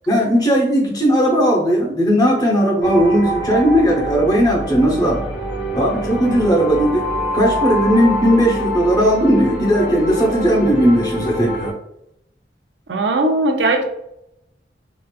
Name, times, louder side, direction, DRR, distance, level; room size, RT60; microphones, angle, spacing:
voice 1, 0.1-5.2 5.7-7.1 7.3-11.7, equal, 20° left, -1 dB, 0.7 m, -16 dB
sound 1, 2.8-11.7, equal, 80° left, 0.9 m, -25 dB
voice 2, 12.9-13.8, right 2 dB, 90° right, 4 dB, 0.5 m, -18 dB
3.8 x 2.4 x 2.3 m, 0.80 s
head